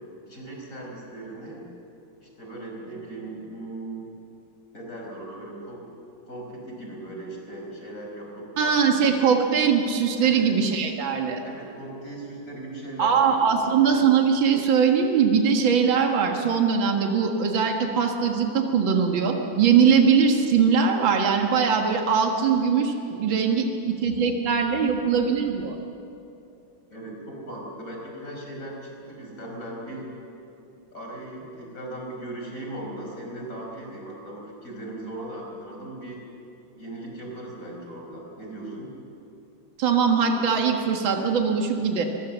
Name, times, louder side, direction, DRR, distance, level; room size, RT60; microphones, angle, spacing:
voice 1, 0.3-1.6 2.2-4.1 4.7-5.9 6.2-8.7 10.2-10.5 11.4-13.9 26.9-30.1 30.9-36.3 36.8-38.9, right 1 dB, 40° left, -1 dB, 5.8 m, -38 dB
voice 2, 8.6-11.4 13.0-25.8 39.8-42.1, right 6 dB, 70° right, 3 dB, 2.4 m, -21 dB
24.0 x 21.5 x 7.3 m, 2.7 s
omnidirectional pair, 2.2 m